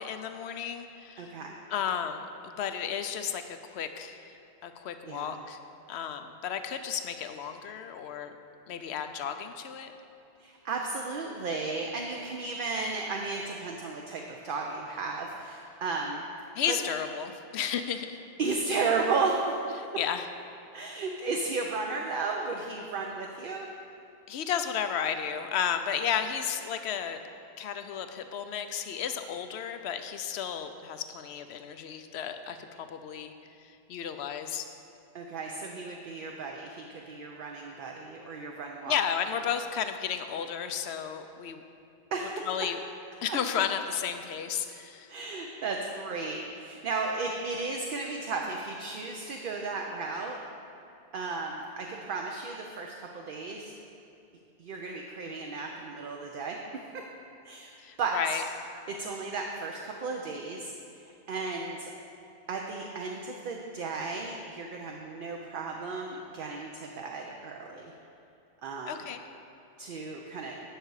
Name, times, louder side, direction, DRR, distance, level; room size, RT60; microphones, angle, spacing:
voice 1, 0.0-1.4 1.7-4.4 4.6-5.6 5.9-8.3 8.7-9.9 16.5-18.2 20.0-20.3 24.3-27.2 27.6-33.3 33.6-34.7 38.9-41.6 42.5-42.8 43.2-45.1 57.8-58.4 68.9-69.2, left 8 dB, 90° left, 8 dB, 0.9 m, -33 dB
voice 2, 1.2-1.6 5.1-5.4 10.4-16.3 16.7-16.8 18.4-19.8 20.7-23.7 35.1-39.0 42.1-42.7 43.3-43.4 45.1-50.4 51.1-53.7 54.6-57.0 57.4-58.4 58.9-61.9 62.5-67.9 68.6-69.0 69.8-70.6, right 4 dB, 60° right, 1 dB, 0.8 m, -34 dB
9.4 x 6.6 x 4.7 m, 2.7 s
omnidirectional pair, 1.1 m